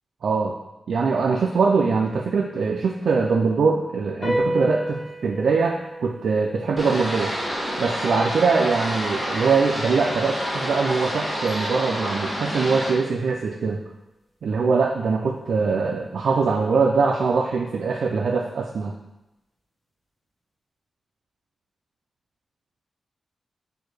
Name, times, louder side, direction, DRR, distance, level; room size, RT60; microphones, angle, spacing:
voice 1, 0.2-0.6 0.9-7.3 7.8-13.8 14.4-19.0, right 4 dB, 80° right, 1 dB, 0.3 m, -22 dB
sound 1, 4.2-10.9, equal, 30° left, 1.1 m, -33 dB
sound 2, 6.8-12.9, equal, 5° left, 1.2 m, -28 dB
4.4 x 2.5 x 4.7 m, 0.96 s
wide cardioid pair, 170°, 0 cm